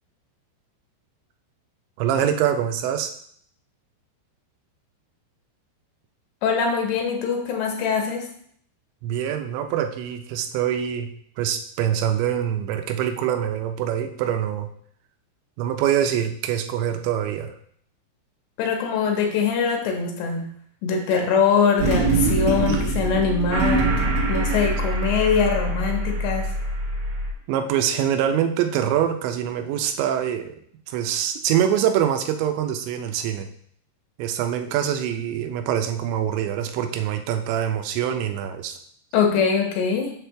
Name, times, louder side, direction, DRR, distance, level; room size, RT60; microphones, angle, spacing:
voice 1, 2.0-3.1 9.0-11.1 11.4-14.7 15.6-17.5 22.7-22.8 27.5-30.6 30.9-33.5 34.2-38.8, right 9 dB, 85° right, 6 dB, 3.0 m, -24 dB
voice 2, 6.4-8.3 18.6-20.5 20.8-24.0 24.3-26.5 39.1-40.1, left 6 dB, 80° left, 2 dB, 3.2 m, -22 dB
sound 1, 21.8-27.3, right 2 dB, 60° right, 1.8 m, -23 dB
7.3 x 6.1 x 3.4 m, 0.62 s
omnidirectional pair, 5.1 m